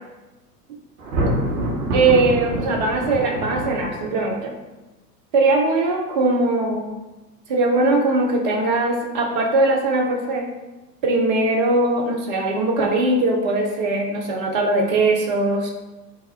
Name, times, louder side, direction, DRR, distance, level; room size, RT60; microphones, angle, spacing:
Thunder, 1.0-4.3, right 1 dB, 50° right, 1.0 m, -25 dB
voice 1, 1.9-4.5 5.3-6.9 7.5-10.5 11.0-15.7, right 2 dB, 30° right, 1 dB, 0.4 m, -20 dB
3.4 x 2.3 x 4.1 m, 1.1 s
figure-of-eight pair, 90°, 49 cm